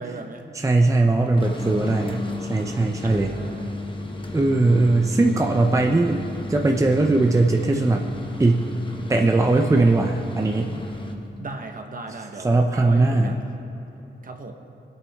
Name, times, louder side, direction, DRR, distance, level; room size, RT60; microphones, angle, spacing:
voice 1, 0.0-0.5 3.0-3.8 11.4-13.6 14.2-14.5, right 3 dB, 50° right, 4 dB, 1.2 m, -37 dB
voice 2, 0.6-3.3 4.3-8.1 8.4-8.6 9.1-10.8 12.4-13.3, right 2 dB, 15° right, 2 dB, 0.6 m, -20 dB
sound 1, 1.2-11.3, left 2 dB, 25° left, 1.1 m, -34 dB
23.5 x 8.7 x 3.6 m, 3.0 s
wide cardioid pair, 115°, 18 cm